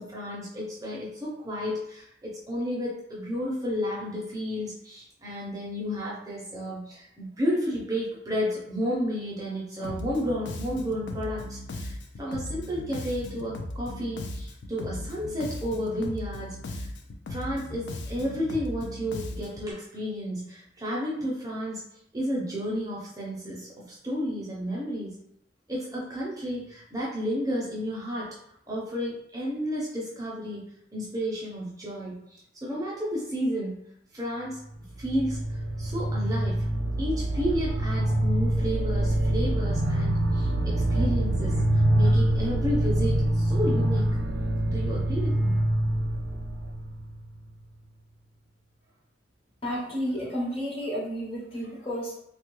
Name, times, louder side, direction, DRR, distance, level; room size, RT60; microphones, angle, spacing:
voice 1, 0.0-16.9 17.3-21.8 22.1-25.2 25.7-28.3 28.7-30.6 30.9-33.8 34.1-34.6 35.0-36.6 37.0-44.1 44.7-45.6, equal, 20° right, -5 dB, 0.5 m, -32 dB
Bass guitar, 9.8-19.7, left 1 dB, 70° left, 0.4 m, -37 dB
sound 1, 34.7-47.5, right 1 dB, 65° right, 0.6 m, -25 dB
voice 2, 49.6-52.2, equal, 30° left, -4 dB, 0.8 m, -31 dB
3.1 x 2.2 x 3.0 m, 0.74 s
head